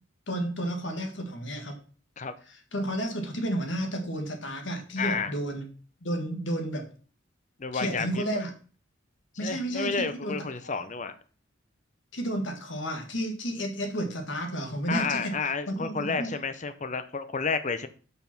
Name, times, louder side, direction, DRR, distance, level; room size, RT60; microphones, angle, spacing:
voice 1, 0.3-1.8 2.7-5.7 6.0-6.9 7.7-8.5 9.4-10.4 10.6-10.8 12.1-15.4 15.7-16.3, right 1 dB, 65° left, 5 dB, 1.7 m, -31 dB
voice 2, 5.0-5.3 7.6-8.2 9.4-11.1 14.9-17.9, left 4 dB, 40° left, 11 dB, 0.7 m, -31 dB
6.7 x 5.7 x 6.0 m, 0.40 s
head